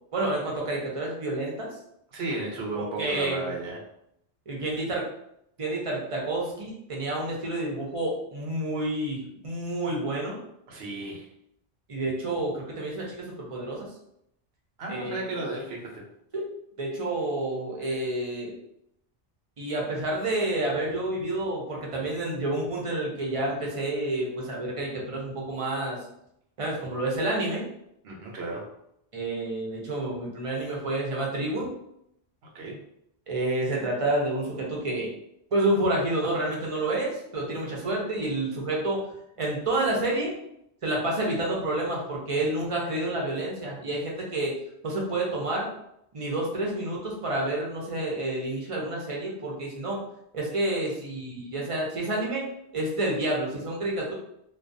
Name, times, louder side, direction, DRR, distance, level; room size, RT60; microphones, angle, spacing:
voice 1, 0.1-1.7 2.7-3.5 4.5-5.1 5.6-10.4 11.9-13.9 14.9-15.3 16.3-16.5 16.8-18.5 19.6-26.0 26.6-27.6 29.1-31.7 33.3-35.1 35.5-39.0 39.4-40.3 40.8-44.5 44.8-45.7 46.1-50.0 50.3-52.4 52.7-54.1, right 1 dB, 40° right, -3 dB, 0.6 m, -29 dB
voice 2, 2.1-3.8 10.7-11.3 14.8-16.1 28.0-28.7 32.5-32.8, right 2 dB, 85° right, -1 dB, 0.9 m, -34 dB
2.4 x 2.3 x 2.5 m, 0.77 s
omnidirectional pair, 1.0 m